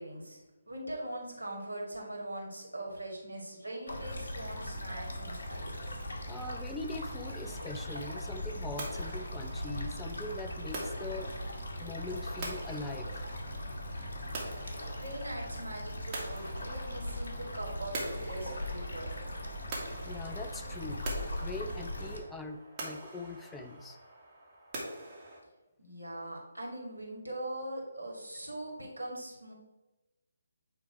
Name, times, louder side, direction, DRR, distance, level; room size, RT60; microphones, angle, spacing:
voice 1, 0.0-6.0 15.0-19.2 25.8-29.5, right 1 dB, 85° right, -2 dB, 2.4 m, -41 dB
sound 1, 3.9-22.2, left 1 dB, 55° left, 1.5 m, -39 dB
voice 2, 6.3-11.3 11.8-13.1 20.0-21.1 21.4-24.0, left 2 dB, 5° left, 6 dB, 0.4 m, -42 dB
sound 2, 7.4-25.4, right 2 dB, 25° right, 1.9 m, -45 dB
9.3 x 3.3 x 4.6 m, 1.1 s
figure-of-eight pair, 145°, 0 cm